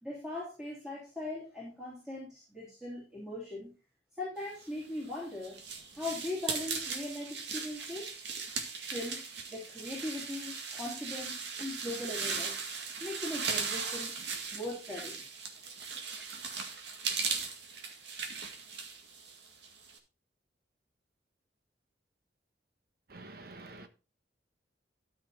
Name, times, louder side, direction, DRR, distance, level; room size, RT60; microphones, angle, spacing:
voice 1, 0.0-3.7 4.2-5.6 5.9-8.1 8.9-9.2 9.5-12.6 13.0-14.1 14.5-15.2, left 2 dB, 5° right, 3.4 m, -40 dB
sound 1, 4.8-20.0, right 5 dB, 75° right, 2.0 m, -38 dB
voice 2, 23.1-23.9, right 2 dB, 55° right, 1.3 m, -48 dB
13.0 x 5.7 x 4.2 m
head